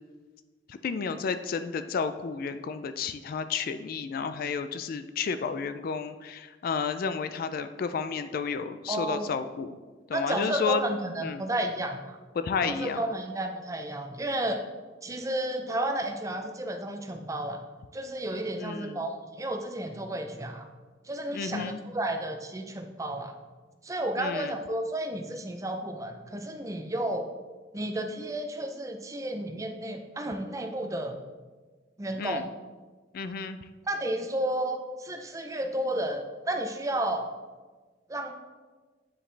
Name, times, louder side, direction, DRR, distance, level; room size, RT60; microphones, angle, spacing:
voice 1, 0.7-9.8 10.1-10.8 11.2-11.4 12.4-13.0 18.6-19.0 21.3-21.8 24.2-24.5 32.1-32.4 33.1-33.6, left 5 dB, 50° left, 10 dB, 0.3 m, -32 dB
voice 2, 8.9-9.3 10.1-12.2 12.6-14.6 15.0-17.6 17.9-20.7 21.1-23.3 23.8-27.3 27.7-31.2 32.0-32.5 33.9-37.3 38.1-38.3, right 1 dB, 15° right, 5 dB, 0.5 m, -32 dB
9.9 x 5.0 x 3.3 m, 1.3 s
head